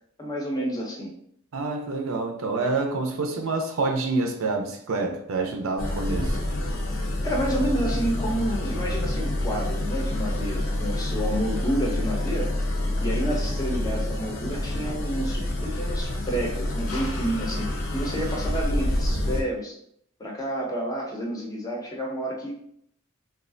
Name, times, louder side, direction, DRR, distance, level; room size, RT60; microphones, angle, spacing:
voice 1, 0.2-1.1 7.2-12.5 13.0-19.8 20.2-22.6, right 1 dB, 20° left, -2 dB, 0.5 m, -29 dB
voice 2, 1.5-6.4, right 3 dB, 75° right, 4 dB, 0.5 m, -27 dB
sound 1, 5.8-19.4, left 1 dB, 70° left, 0.6 m, -27 dB
3.1 x 2.4 x 2.5 m, 0.69 s
head